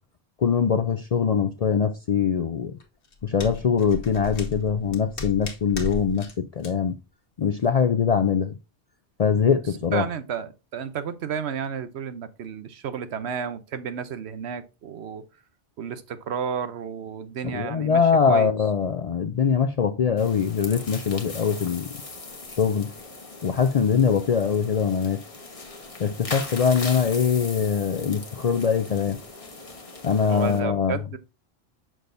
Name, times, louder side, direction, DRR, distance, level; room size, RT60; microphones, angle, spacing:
voice 1, 0.4-2.7 3.2-7.0 7.4-8.5 9.2-10.0 17.4-21.9 22.6-22.9 23.4-25.2 26.0-29.2 30.0-31.0, left 6 dB, 55° left, 0.4 m, -22 dB
sound 1, 2.8-6.3 6.6-6.7, left 3 dB, 85° left, 1.6 m, -35 dB
voice 2, 9.9-15.2 15.8-18.0 18.3-18.5 30.3-31.2, right 7 dB, 80° right, 1.0 m, -32 dB
sound 2, 20.2-30.6, left 3 dB, 35° left, 1.2 m, -39 dB
6.8 x 6.2 x 2.6 m
omnidirectional pair, 1.1 m